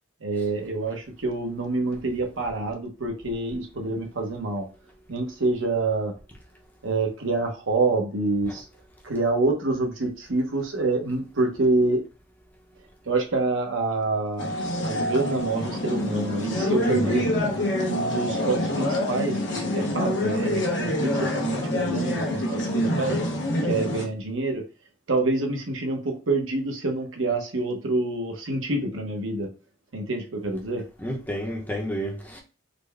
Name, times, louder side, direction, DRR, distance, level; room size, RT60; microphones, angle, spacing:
voice 1, 0.2-4.7 5.1-6.1 6.8-8.6 9.0-12.0 13.1-14.5 14.8-17.2 17.9-23.2 23.6-24.6 25.1-29.5 29.9-30.8, right 2 dB, 85° right, 0.9 m, -27 dB
sound 1, 14.4-24.0, left 1 dB, 65° left, 1.0 m, -26 dB
voice 2, 16.8-17.2 31.0-32.4, equal, 10° left, 0.8 m, -30 dB
3.9 x 2.2 x 3.3 m
head